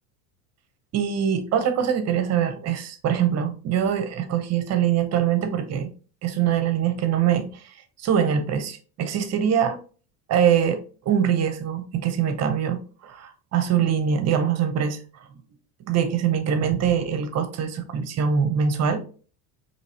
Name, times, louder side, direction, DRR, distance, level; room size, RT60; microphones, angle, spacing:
voice 1, 0.9-5.9 6.2-9.8 10.3-15.0 15.9-19.0, right 8 dB, 40° right, 0.8 m, -23 dB
4.5 x 3.0 x 2.8 m
supercardioid pair, 120°, 42 cm